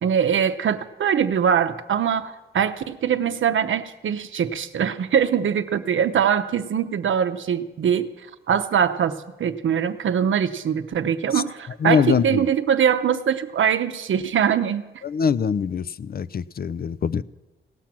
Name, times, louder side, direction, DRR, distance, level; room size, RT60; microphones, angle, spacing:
voice 1, 0.0-8.1 8.5-15.0, right 8 dB, 80° right, 10 dB, 0.7 m, -22 dB
voice 2, 11.8-12.2 15.1-15.8 16.1-17.2, left 6 dB, 50° left, 18 dB, 0.4 m, -22 dB
17.5 x 5.8 x 7.5 m, 1.1 s
cardioid pair, 55°, 20 cm